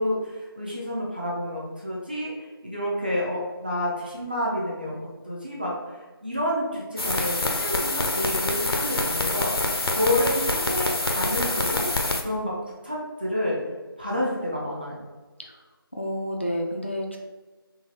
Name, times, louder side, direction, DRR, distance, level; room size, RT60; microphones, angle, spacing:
voice 1, 0.0-2.3 2.6-11.8 12.2-12.5 12.8-13.6 14.0-14.9, left 1 dB, 25° right, -5 dB, 0.6 m, -29 dB
sound 1, 7.0-12.2, left 2 dB, 80° left, 0.7 m, -26 dB
voice 2, 15.9-17.2, equal, 30° left, 1 dB, 0.4 m, -30 dB
4.0 x 3.3 x 3.8 m, 1.2 s
figure-of-eight pair, 175°, 13 cm